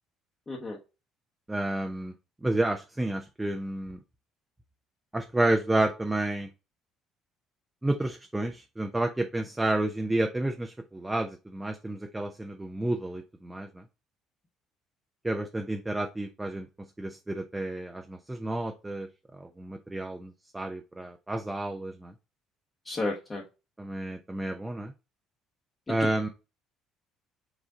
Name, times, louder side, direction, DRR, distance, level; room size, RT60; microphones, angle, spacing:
voice 1, 0.5-0.8 22.8-23.4 25.9-26.0, left 2 dB, 25° left, -3 dB, 1.3 m, -32 dB
voice 2, 1.5-2.1 2.4-4.0 5.1-6.5 7.8-13.8 15.2-16.7 17.0-19.1 19.3-22.1 23.8-24.9 25.9-26.3, right 1 dB, 15° right, 4 dB, 0.7 m, -30 dB
5.1 x 2.5 x 3.6 m, 0.28 s
hypercardioid pair, 55°, 0 cm